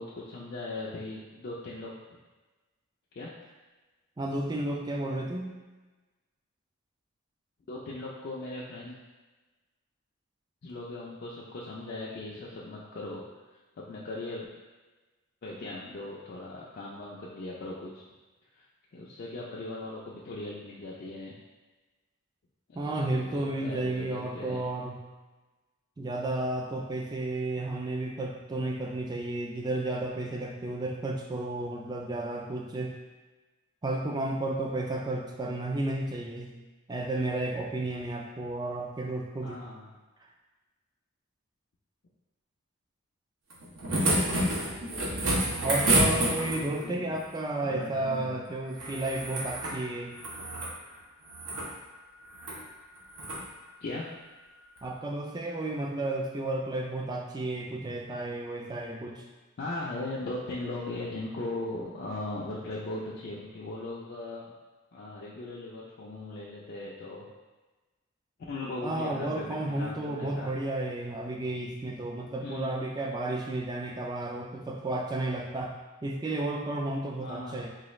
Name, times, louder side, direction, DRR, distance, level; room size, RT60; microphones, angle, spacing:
voice 1, 0.0-2.2 3.1-3.3 7.7-9.0 10.6-13.2 13.8-14.5 15.4-18.0 18.5-18.7 18.9-21.3 22.7-23.0 23.4-24.6 39.4-39.9 45.3-47.2 47.6-48.4 53.8-54.1 59.6-64.5 64.9-67.3 68.5-70.5 72.4-72.7 77.2-77.6, left 2 dB, 50° left, -6 dB, 0.4 m, -39 dB
voice 2, 4.2-5.6 22.7-25.1 26.0-32.9 33.8-36.5 36.9-39.7 45.6-50.2 54.8-59.2 68.8-75.7 76.0-77.7, right 2 dB, 20° right, 1 dB, 0.3 m, -32 dB
sound 1, 43.5-46.8 48.7-49.8 50.1-50.7 51.3-51.7 52.3-52.6 53.1-53.4 54.8-54.9, right 1 dB, 75° right, 0.8 m, -28 dB
4.0 x 2.3 x 3.1 m, 1.2 s
head